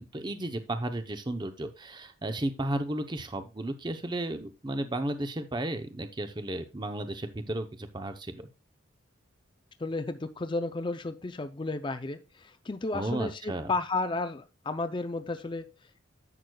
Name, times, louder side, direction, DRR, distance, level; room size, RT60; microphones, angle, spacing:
voice 1, 0.0-8.5 12.9-13.7, right 1 dB, 20° right, 8 dB, 0.7 m, -34 dB
voice 2, 9.8-15.7, left 3 dB, 25° left, 9 dB, 0.5 m, -33 dB
11.0 x 7.9 x 2.3 m, 0.28 s
head